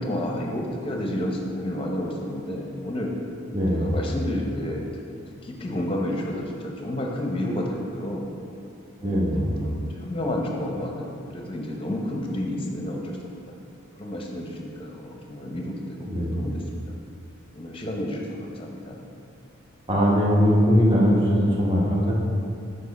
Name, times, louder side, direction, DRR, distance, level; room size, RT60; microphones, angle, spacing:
voice 1, 0.0-3.1 3.7-4.8 5.1-8.3 9.0-13.2 14.0-16.0 16.2-16.9 17.6-19.0, left 1 dB, 25° left, 0 dB, 0.7 m, -31 dB
voice 2, 3.5-3.9 9.0-9.5 16.1-16.4 19.9-22.1, equal, 25° right, -4 dB, 1.0 m, -20 dB
7.3 x 5.0 x 4.1 m, 2.5 s
head